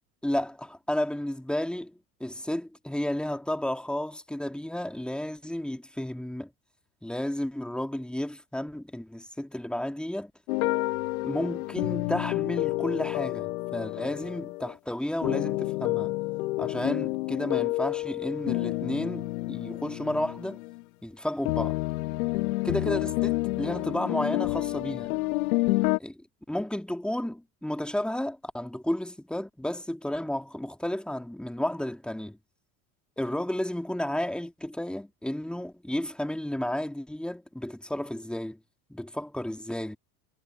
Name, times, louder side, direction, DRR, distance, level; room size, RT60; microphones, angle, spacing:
voice 1, 0.2-6.5 7.0-10.3 11.2-16.1 16.6-20.6 21.0-21.8 22.6-25.1 26.0-26.2 26.5-32.4 33.2-38.6 38.9-40.0, left 1 dB, ahead, 2.5 m, -32 dB
sound 1, 10.5-14.7 15.2-20.8 21.4-26.0, left 20 dB, 75° left, 1.1 m, -29 dB
hypercardioid pair, 85°, 43 cm